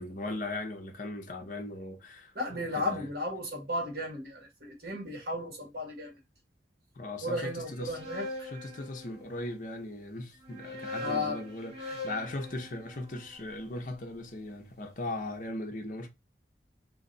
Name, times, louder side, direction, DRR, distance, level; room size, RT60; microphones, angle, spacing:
voice 1, 0.0-3.1 7.0-8.0 8.4-16.1, left 2 dB, 50° left, 0.6 m, -38 dB
voice 2, 2.3-6.2 7.2-8.5 11.0-11.4, left 1 dB, 60° right, 1.2 m, -34 dB
sound 1, 7.6-9.5 10.3-14.5, left 2 dB, 35° right, 1.6 m, -42 dB
2.6 x 2.2 x 3.8 m
head